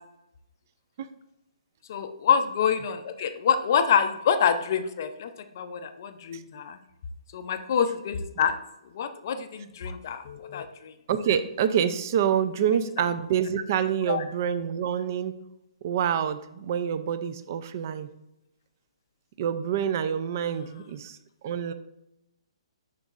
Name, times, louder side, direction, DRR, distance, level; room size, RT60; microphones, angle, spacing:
voice 1, 1.9-6.8 7.3-8.6 8.8-10.9 14.1-14.2 20.5-20.8, left 7 dB, 35° left, 9 dB, 0.4 m, -27 dB
voice 2, 11.1-15.4 15.8-18.1 19.4-21.2 21.4-21.7, right 8 dB, 30° right, 12 dB, 0.3 m, -27 dB
10.5 x 3.9 x 2.5 m, 0.87 s
hypercardioid pair, 175°, 3 cm